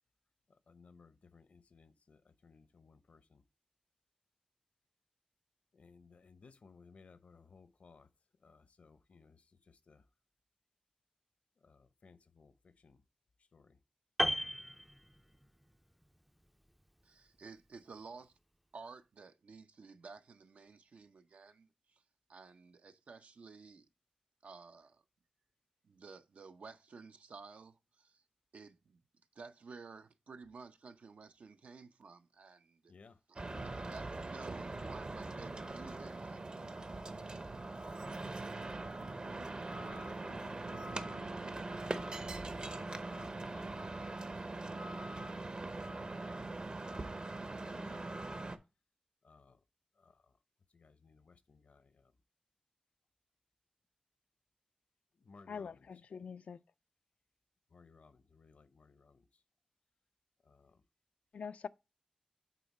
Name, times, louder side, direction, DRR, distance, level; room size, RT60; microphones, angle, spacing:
voice 1, 0.5-3.4 5.7-8.1 8.4-10.0 11.6-13.0 13.4-13.8 32.9-33.2 39.8-43.7 43.9-45.4 47.6-48.4 49.2-49.6 50.0-50.4 50.7-52.1 55.1-55.9 57.7-59.4 60.4-60.8, left 4 dB, 75° left, 0.7 m, -61 dB
Piano, 14.2-15.6 15.9-16.2, equal, 5° right, 0.4 m, -35 dB
voice 2, 17.0-18.3 18.7-22.0 22.3-23.9 24.4-25.0 25.8-28.2 28.5-29.0 29.4-32.9 33.3-36.4 37.1-37.4, right 4 dB, 80° right, 0.6 m, -53 dB
sound 1, 33.4-48.6, right 2 dB, 45° right, 0.7 m, -42 dB
voice 3, 55.5-56.6 61.3-61.7, left 6 dB, 90° left, 0.3 m, -44 dB
8.4 x 4.0 x 4.2 m
wide cardioid pair, 80°, 2 cm